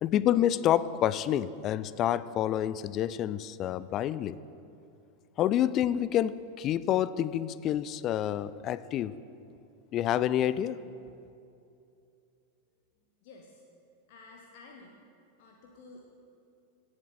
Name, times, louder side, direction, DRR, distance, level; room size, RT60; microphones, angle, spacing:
voice 1, 0.0-4.4 5.4-9.1 9.9-10.8, left 11 dB, 35° left, 0.3 m, -28 dB
voice 2, 13.2-13.6 14.1-15.0 15.4-16.2, left 3 dB, 50° left, 1.0 m, -52 dB
17.0 x 7.7 x 4.3 m
figure-of-eight pair, 90°, 0 cm